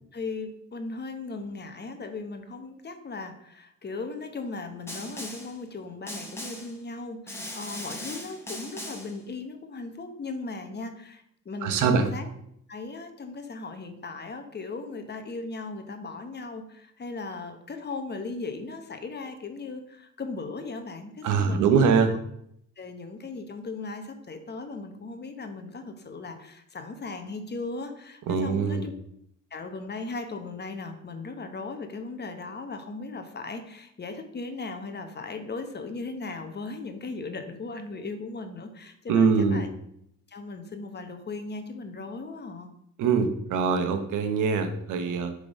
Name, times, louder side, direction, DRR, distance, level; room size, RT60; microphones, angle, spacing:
voice 1, 0.1-12.3 12.7-22.2 22.8-28.9 29.5-39.7 40.3-42.7, left 3 dB, 35° left, 7 dB, 1.0 m, -37 dB
Snare drum, 4.9-5.6 6.1-6.8 7.3-9.2, left 1 dB, 10° left, 1.6 m, -39 dB
voice 2, 11.6-12.1 21.2-22.1 28.3-28.9 39.1-39.6 43.0-45.3, right 5 dB, 85° right, 7 dB, 1.0 m, -23 dB
6.8 x 3.8 x 5.3 m, 0.73 s
cardioid pair, 90°, 30 cm